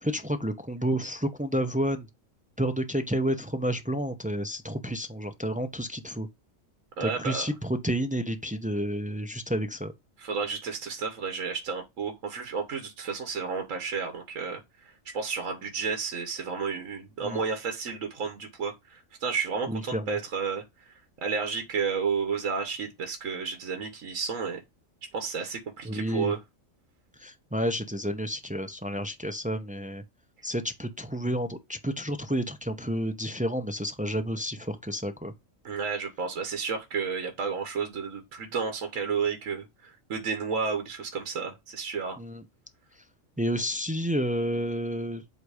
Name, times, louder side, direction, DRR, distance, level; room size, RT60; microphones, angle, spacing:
voice 1, 0.0-2.1 2.6-6.3 7.0-9.9 17.2-17.4 19.7-20.2 25.8-26.3 27.2-30.0 30.4-35.3 42.2-42.4 43.4-45.2, equal, 10° right, 0.4 m, -30 dB
voice 2, 7.0-7.5 10.2-14.6 15.1-24.6 25.1-26.4 35.6-42.2, right 5 dB, 75° right, 1.4 m, -32 dB
8.1 x 2.7 x 4.8 m
omnidirectional pair, 1.4 m